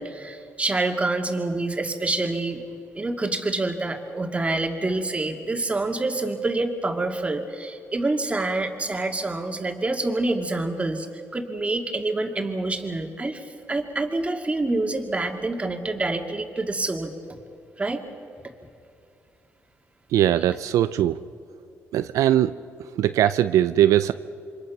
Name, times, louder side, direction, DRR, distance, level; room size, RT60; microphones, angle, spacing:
voice 1, 0.0-2.6 2.9-11.1 11.3-17.1 17.8-18.0, right 2 dB, 25° right, 4 dB, 2.4 m, -27 dB
voice 2, 20.1-21.2 21.9-22.5 23.0-24.1, right 12 dB, 80° right, 12 dB, 0.5 m, -20 dB
27.5 x 24.0 x 6.0 m, 2.4 s
cardioid pair, 75°, 6 cm